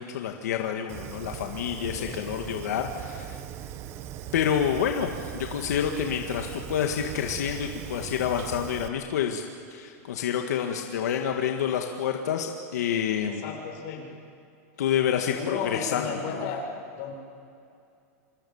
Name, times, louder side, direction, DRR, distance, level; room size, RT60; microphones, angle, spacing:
voice 1, 0.0-3.4 4.3-9.4 9.7-13.5 14.8-16.1 16.3-16.5, left 8 dB, 90° left, 3 dB, 1.9 m, -28 dB
Fire, 0.9-8.9, right 11 dB, 30° right, 1.0 m, -39 dB
voice 2, 1.9-2.2 13.3-14.1 15.3-16.6 17.0-17.1, left 6 dB, 45° left, 0 dB, 6.6 m, -34 dB
28.0 x 26.0 x 7.3 m, 2.5 s
supercardioid pair, 165°, 9 cm